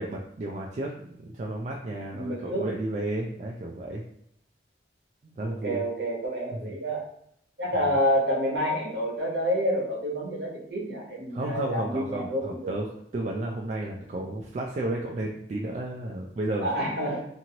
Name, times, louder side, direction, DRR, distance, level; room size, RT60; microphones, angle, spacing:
voice 1, 0.0-4.0 5.3-5.8 6.5-6.7 7.7-7.9 11.3-16.7, right 1 dB, 40° right, -1 dB, 0.3 m, -33 dB
voice 2, 2.1-2.7 5.4-7.1 7.6-12.7 16.6-17.3, equal, 65° right, -3 dB, 1.1 m, -28 dB
2.9 x 2.6 x 2.8 m, 0.72 s
head